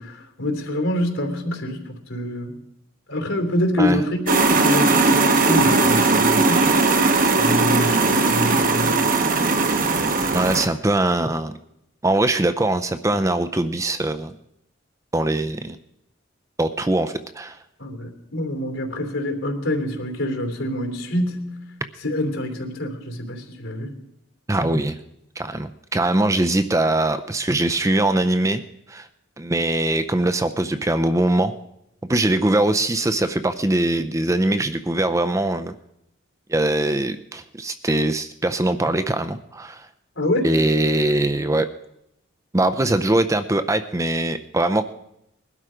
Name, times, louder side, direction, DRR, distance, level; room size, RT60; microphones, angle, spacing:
voice 1, 0.0-1.8 2.1-2.5 3.1-6.7 7.4-9.0 17.8-21.5 22.0-23.9 40.2-40.5, left 1 dB, 80° left, 4 dB, 3.0 m, -26 dB
sound 1, 4.3-10.7, right 3 dB, 40° right, 1.0 m, -18 dB
voice 2, 10.3-11.5 12.0-14.3 15.1-15.8 16.6-17.6 24.5-25.0 25.4-28.6 28.9-29.1 29.4-31.5 32.1-35.7 36.5-39.9 40.4-41.7 42.5-44.8, right 1 dB, 15° right, 10 dB, 0.5 m, -22 dB
21.0 x 12.0 x 5.0 m, 0.82 s
head